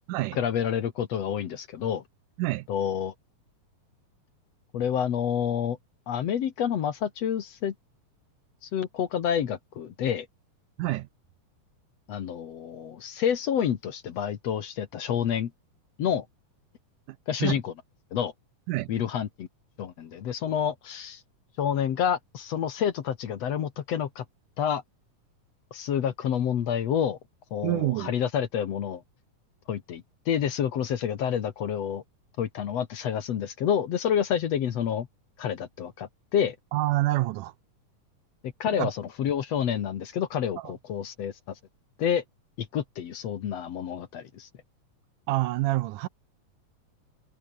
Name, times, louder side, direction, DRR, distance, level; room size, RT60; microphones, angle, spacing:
voice 1, 0.4-2.0 2.7-3.1 4.7-5.8 6.1-7.7 8.6-10.3 12.1-15.5 16.0-16.3 17.3-17.7 18.1-18.3 18.9-19.5 19.8-21.2 21.6-24.2 24.6-24.8 25.7-27.2 27.5-29.0 29.7-32.0 32.4-35.1 35.4-36.6 38.4-41.6 42.0-42.2 42.6-44.5, left 8 dB, 55° left, 2.3 m, -28 dB
voice 2, 17.1-17.6 18.7-18.9 27.6-28.1 36.7-37.5 38.8-38.9 40.6-40.7 45.3-46.1, right 17 dB, 75° right, 2.1 m, -27 dB
omnidirectional pair, 3.9 m